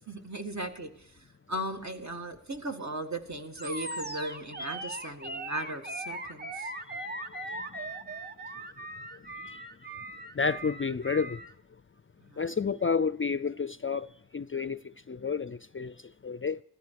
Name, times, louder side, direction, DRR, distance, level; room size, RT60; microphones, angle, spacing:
voice 1, 0.1-6.7 12.3-12.5, right 1 dB, 45° right, 2.0 m, -37 dB
Animal, 3.6-11.5, right 1 dB, 25° right, 1.3 m, -39 dB
voice 2, 7.3-7.8 9.1-9.7 10.3-11.5 12.4-16.6, left 5 dB, 35° left, 0.4 m, -31 dB
15.5 x 14.0 x 4.7 m
wide cardioid pair, 45°, 38 cm